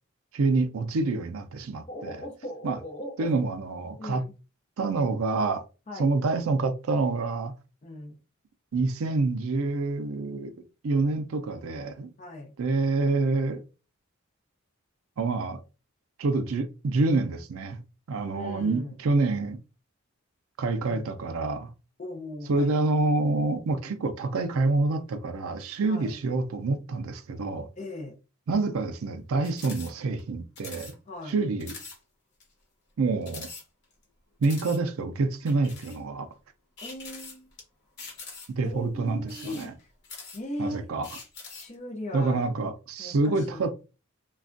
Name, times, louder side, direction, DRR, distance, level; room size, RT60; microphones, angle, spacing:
voice 1, 0.3-2.2 2.6-2.8 3.2-4.2 4.8-5.6 6.0-7.5 8.7-10.5 10.8-12.1 12.6-13.6 15.2-15.6 16.2-17.8 18.1-19.6 20.6-21.7 22.5-27.7 28.5-30.9 31.3-31.7 33.0-33.5 34.4-36.3 38.5-39.7 40.6-41.1 42.1-43.7, right 3 dB, 80° right, 0.4 m, -27 dB
voice 2, 1.9-3.3 4.0-4.3 5.9-6.1 7.8-8.2 12.2-12.5 18.3-19.0 20.8-21.1 22.0-22.8 25.8-26.2 27.8-28.2 31.1-31.4 36.8-37.5 38.6-39.9 40.3-40.9 41.5-42.5 43.0-43.7, left 1 dB, 35° left, 0.5 m, -38 dB
sound 1, 29.4-29.9 30.2-30.3 30.6-30.9 31.3-31.4 31.6-32.0 32.4-32.5 33.2-34.0 34.4-34.8 35.5-36.0 36.8-37.6 38.0-38.7 39.2-40.6 41.0-41.7, left 4 dB, 55° left, 1.1 m, -43 dB
3.2 x 2.3 x 2.5 m
head